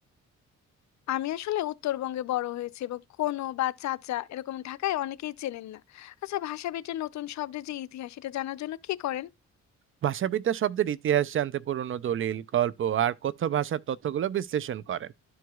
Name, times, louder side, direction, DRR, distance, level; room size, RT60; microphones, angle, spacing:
voice 1, 1.1-9.3, left 14 dB, 65° left, 0.6 m, -32 dB
voice 2, 10.0-15.1, right 10 dB, 45° right, 0.4 m, -28 dB
12.5 x 4.7 x 2.2 m
cardioid pair, 90°, 30 cm